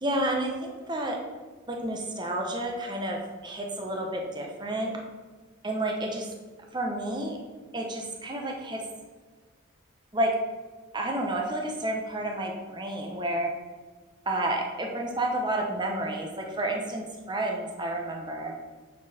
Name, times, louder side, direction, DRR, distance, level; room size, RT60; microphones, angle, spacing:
voice 1, 0.0-1.2 1.7-4.9 5.6-6.3 6.7-7.4 7.7-8.8 10.1-10.3 10.9-13.5 14.3-18.5, right 1 dB, 20° right, 1 dB, 0.8 m, -30 dB
8.6 x 4.5 x 4.1 m, 1.4 s
head